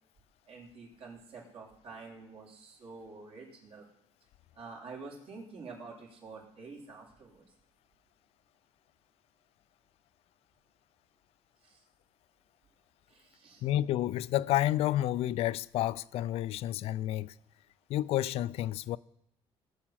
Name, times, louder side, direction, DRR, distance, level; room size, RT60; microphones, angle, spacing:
voice 1, 0.5-3.9 4.5-7.4 11.6-11.8 13.1-13.7, right 4 dB, 65° right, 3.8 m, -48 dB
voice 2, 13.6-17.3 17.9-19.0, left 13 dB, 70° left, 0.4 m, -30 dB
19.0 x 7.2 x 5.8 m
cardioid pair, 125°, 11 cm